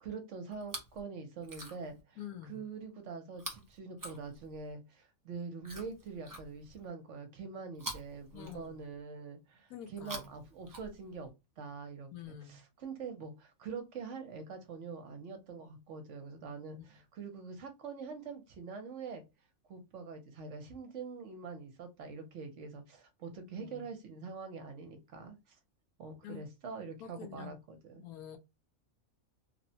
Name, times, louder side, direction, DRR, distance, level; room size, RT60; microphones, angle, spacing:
voice 1, 0.0-2.2 2.5-11.3 11.6-19.2 19.7-25.6 26.0-28.1, right 5 dB, 65° right, 0.9 m, -44 dB
Chewing mastication, 0.5-1.0 1.4-2.0 3.3-4.7 5.6-6.9 7.7-9.0 9.9-11.3 12.2-12.3, right 1 dB, 30° right, 0.4 m, -47 dB
voice 2, 2.2-2.6 8.3-8.7 9.7-10.3 12.1-12.6 16.7-16.8 23.6-23.9 26.2-26.5 27.0-27.6 28.0-28.4, left 9 dB, 90° left, 1.1 m, -47 dB
3.0 x 2.1 x 2.6 m
omnidirectional pair, 1.5 m